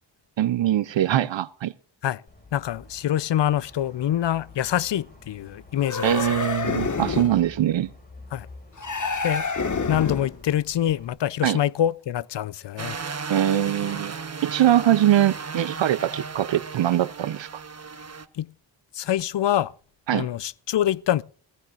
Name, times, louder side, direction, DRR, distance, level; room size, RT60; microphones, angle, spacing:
voice 1, 0.4-1.7 6.0-7.9 11.4-11.6 13.3-14.2 14.4-17.5 20.1-20.3, right 12 dB, 70° right, 0.6 m, -22 dB
sound 1, 2.3-11.1, left 3 dB, 20° left, 5.3 m, -48 dB
voice 2, 2.5-6.1 8.3-8.5 9.2-9.5 9.9-13.0 18.3-18.5 18.9-19.7 20.1-21.2, left 11 dB, 65° left, 0.6 m, -25 dB
sound 2, 5.8-7.4 8.8-10.4, left 4 dB, 40° left, 1.6 m, -28 dB
sound 3, 12.8-18.3, right 5 dB, 35° right, 1.1 m, -35 dB
17.0 x 16.0 x 2.5 m
cardioid pair, 85°, 47 cm